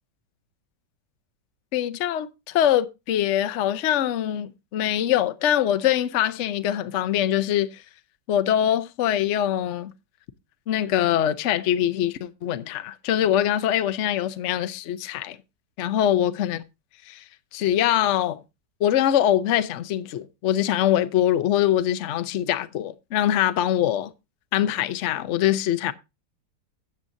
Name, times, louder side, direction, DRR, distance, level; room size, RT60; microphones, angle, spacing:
voice 1, 1.7-7.8 8.3-9.9 10.7-15.4 15.8-16.6 17.1-17.2 17.5-18.4 18.8-24.1 24.5-25.9, left 11 dB, 60° left, 0.8 m, -23 dB
13.5 x 8.5 x 2.6 m
omnidirectional pair, 1.8 m